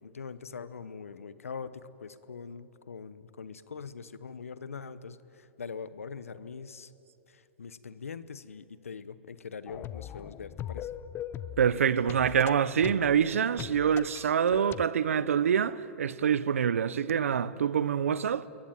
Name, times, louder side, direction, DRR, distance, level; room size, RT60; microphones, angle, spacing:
voice 1, 0.0-6.9 7.3-10.9, left 5 dB, 90° left, 1.1 m, -43 dB
sound 1, 9.7-14.8, left 11 dB, 30° left, 0.8 m, -41 dB
voice 2, 11.6-18.5, right 8 dB, 80° right, 0.9 m, -26 dB
28.5 x 22.0 x 9.0 m
hypercardioid pair, 110°, 7 cm